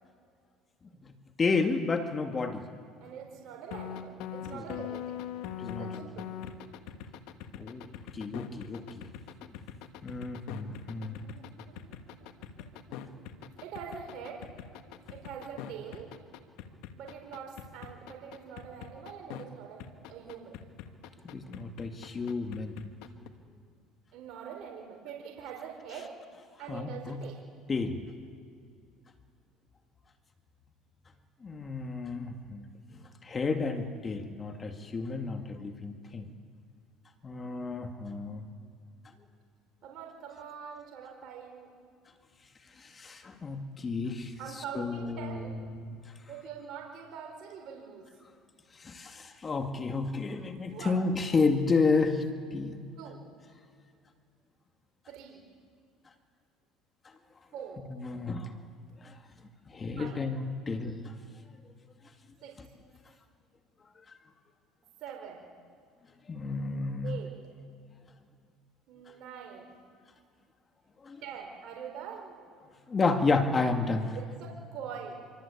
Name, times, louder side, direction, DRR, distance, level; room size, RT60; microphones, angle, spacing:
voice 1, 1.4-2.6 4.5-4.6 5.6-5.9 7.6-7.9 8.1-9.1 10.0-11.2 21.3-22.7 26.7-27.2 27.7-28.0 31.4-32.6 33.3-36.3 37.2-38.4 43.0-44.3 44.7-45.1 45.8-45.9 48.8-52.2 52.5-52.8 58.0-58.5 59.7-61.0 66.3-67.1 71.1-71.2 72.9-74.1, left 4 dB, 25° left, 5 dB, 2.2 m, -31 dB
voice 2, 3.0-5.2 5.7-6.3 10.9-11.4 11.8-12.0 13.6-14.4 15.1-16.1 16.9-19.8 20.1-20.6 24.1-26.1 26.6-27.4 39.8-41.7 44.4-45.5 46.3-48.1 50.7-51.0 53.0-53.2 55.1-55.5 57.5-57.8 60.0-60.2 62.4-62.5 65.0-65.5 67.0-67.3 68.9-69.8 71.2-72.4 74.1-75.3, right 7 dB, 60° right, 1 dB, 4.4 m, -43 dB
sound 1, 3.7-19.4 19.8-23.3, left 9 dB, 75° left, 1.9 m, -42 dB
26.5 x 24.0 x 8.6 m, 2.3 s
supercardioid pair, 110°, 0 cm